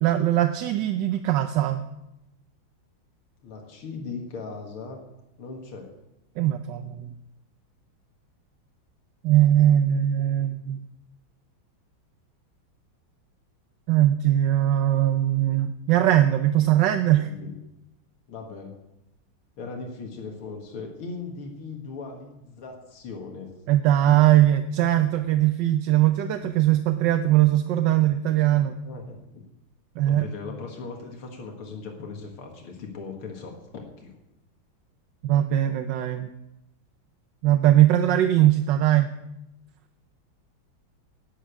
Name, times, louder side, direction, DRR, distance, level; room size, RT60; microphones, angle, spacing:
voice 1, 0.0-1.9 6.4-7.1 9.2-10.8 13.9-17.3 23.7-28.8 30.0-30.3 35.2-36.3 37.4-39.1, right 12 dB, 70° right, 9 dB, 1.2 m, -20 dB
voice 2, 3.4-5.0 5.4-5.9 17.1-17.5 18.3-18.8 19.6-23.5 28.8-29.4 30.1-34.2, left 4 dB, 90° left, 2 dB, 2.6 m, -38 dB
12.0 x 9.9 x 8.3 m, 0.91 s
omnidirectional pair, 2.3 m